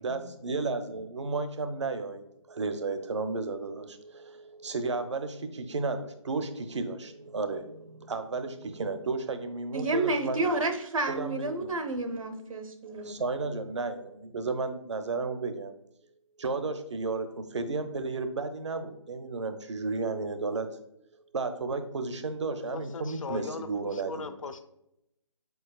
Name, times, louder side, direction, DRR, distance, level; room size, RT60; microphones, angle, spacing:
voice 1, 0.0-10.4 11.1-11.7 13.0-15.7 16.4-20.8 21.3-24.3, right 3 dB, 60° right, 9 dB, 0.6 m, -33 dB
voice 2, 9.7-13.2, right 2 dB, 90° right, 6 dB, 0.8 m, -30 dB
voice 3, 22.7-24.6, left 4 dB, 80° left, 10 dB, 0.6 m, -39 dB
4.6 x 4.4 x 2.3 m, 0.81 s
hypercardioid pair, 175°, 17 cm